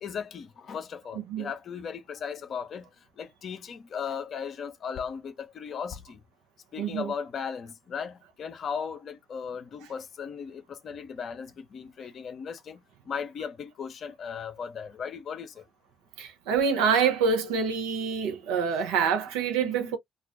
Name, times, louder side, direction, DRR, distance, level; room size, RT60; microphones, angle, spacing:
voice 1, 0.0-2.9 3.2-6.2 6.7-15.6 19.6-19.9, left 6 dB, 55° left, 0.5 m, -37 dB
voice 2, 1.1-1.5 6.8-7.1 9.8-9.9 16.2-20.0, right 6 dB, 75° right, 0.6 m, -26 dB
2.3 x 2.1 x 2.4 m
figure-of-eight pair, 45°, 0 cm